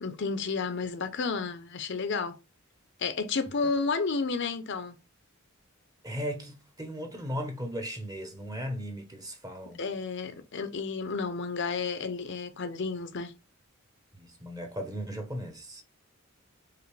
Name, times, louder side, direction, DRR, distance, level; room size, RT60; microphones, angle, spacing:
voice 1, 0.0-2.4 3.0-5.0 9.8-13.3, left 4 dB, 55° left, 0.6 m, -31 dB
voice 2, 6.0-9.8 14.2-15.8, equal, 15° right, 0.9 m, -37 dB
5.0 x 2.8 x 3.2 m
head